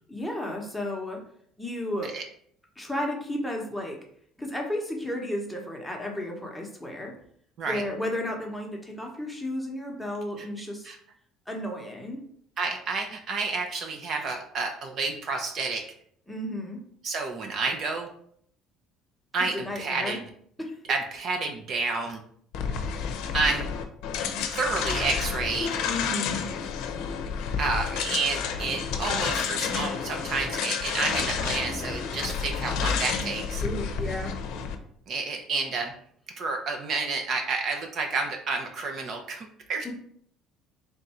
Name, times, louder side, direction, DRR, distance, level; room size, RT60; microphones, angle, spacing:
voice 1, 0.1-1.2 1.6-2.1 2.8-4.0 4.4-7.1 7.7-10.9 11.5-12.2 16.3-16.8 19.5-20.2 20.6-20.7 25.9-26.4 33.6-34.3 39.8-39.9, left 1 dB, ahead, 0 dB, 0.9 m, -33 dB
voice 2, 12.6-15.9 17.0-18.1 19.3-20.2 20.9-22.2 23.3-23.7 24.5-25.8 27.6-33.6 35.1-35.9 36.4-39.9, right 4 dB, 50° right, 4 dB, 0.6 m, -30 dB
sound 1, 22.5-34.8, left 6 dB, 75° left, 0.6 m, -30 dB
3.5 x 2.5 x 4.3 m, 0.64 s
cardioid pair, 130°, 0 cm